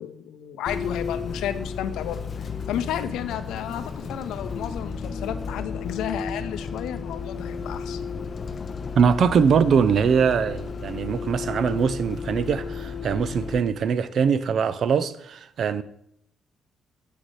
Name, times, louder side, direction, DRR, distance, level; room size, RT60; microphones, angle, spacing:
voice 1, 0.0-8.0, left 10 dB, 85° left, 0.5 m, -32 dB
Bus, 0.7-13.6, left 5 dB, 35° left, 0.4 m, -33 dB
voice 2, 9.0-15.8, right 6 dB, 55° right, 0.4 m, -22 dB
7.5 x 6.5 x 3.2 m
cardioid pair, 130°, 0 cm